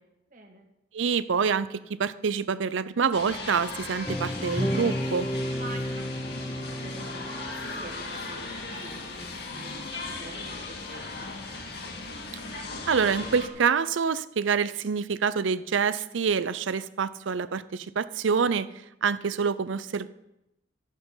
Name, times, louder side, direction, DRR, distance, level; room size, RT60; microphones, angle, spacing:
voice 1, 0.3-0.7 5.5-11.8, right 2 dB, 45° right, 1 dB, 1.7 m, -47 dB
voice 2, 0.9-5.3 12.9-18.7 19.0-20.1, right 6 dB, 80° right, 15 dB, 0.5 m, -26 dB
sound 1, 3.1-13.5, left 3 dB, 55° left, 1.9 m, -37 dB
sound 2, 4.1-8.3, equal, 10° left, 0.5 m, -32 dB
12.5 x 8.2 x 5.6 m, 0.90 s
head